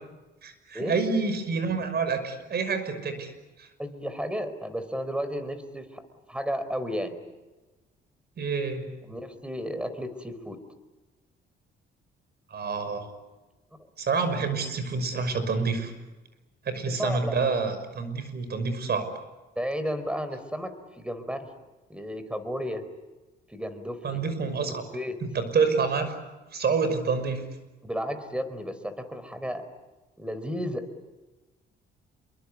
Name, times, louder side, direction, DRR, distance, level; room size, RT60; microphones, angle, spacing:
voice 1, 0.4-3.3 3.6-3.7 8.4-8.9 12.5-13.1 14.0-15.9 16.6-19.1 24.0-24.8 25.2-26.1 26.5-27.4, right 4 dB, 55° right, 10 dB, 5.9 m, -27 dB
voice 2, 3.8-7.2 9.1-10.6 16.8-17.3 19.6-21.5 21.9-22.9 23.5-24.2 24.7-25.2 27.8-29.7 30.2-30.9, equal, 5° right, 11 dB, 4.2 m, -33 dB
28.0 x 23.5 x 8.4 m, 1.1 s
cardioid pair, 90°, 20 cm